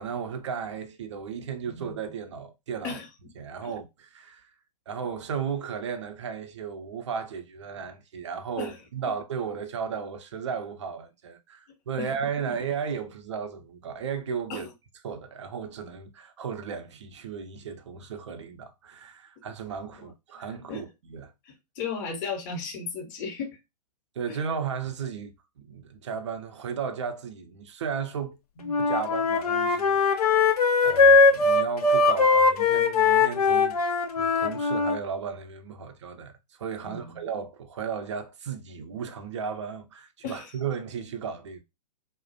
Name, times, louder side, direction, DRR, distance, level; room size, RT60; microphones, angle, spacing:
voice 1, 0.0-3.0 3.4-4.5 4.9-14.7 15.0-21.3 24.2-28.4 28.8-33.8 34.2-36.3 36.6-41.6, right 6 dB, 45° right, 0.5 m, -35 dB
voice 2, 1.7-2.0 2.8-3.1 3.6-3.7 8.6-8.8 12.0-12.1 14.5-14.7 20.0-20.1 20.7-20.8 21.4-23.5 24.3-24.4 28.6-28.8 36.8-37.2 40.2-40.5, left 5 dB, 30° left, 0.7 m, -35 dB
Wind instrument woodwind instrument, 28.6-35.0, left 4 dB, 65° left, 0.5 m, -21 dB
2.3 x 2.0 x 2.5 m
figure-of-eight pair, 120°, 21 cm